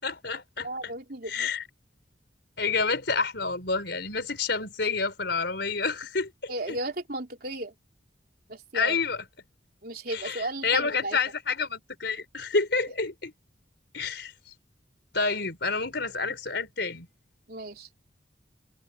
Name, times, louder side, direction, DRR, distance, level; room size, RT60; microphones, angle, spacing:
voice 1, 0.0-0.9 1.3-1.6 2.6-6.8 8.7-9.2 10.1-13.3 13.9-14.3 15.1-17.1, left 4 dB, 65° left, 4.1 m, -29 dB
voice 2, 0.6-1.5 6.5-7.7 8.5-9.0 9.8-11.2 17.5-17.9, right 2 dB, 55° right, 3.7 m, -34 dB
head